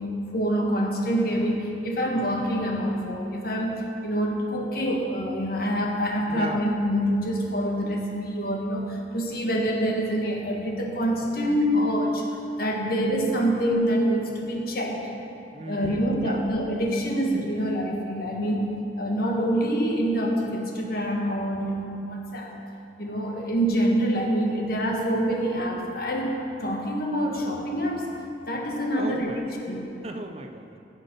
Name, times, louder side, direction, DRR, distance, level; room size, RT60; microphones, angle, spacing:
voice 1, 0.0-12.3 12.6-15.1 15.7-18.7 19.0-22.5 23.0-28.1 28.5-29.9, equal, 55° left, 0 dB, 1.6 m, -26 dB
voice 2, 6.3-6.6 15.5-16.4 18.3-18.5 23.1-23.2 28.5-29.5 30.0-30.8, right 2 dB, 35° right, 5 dB, 0.6 m, -38 dB
16.0 x 7.2 x 5.5 m, 2.7 s
head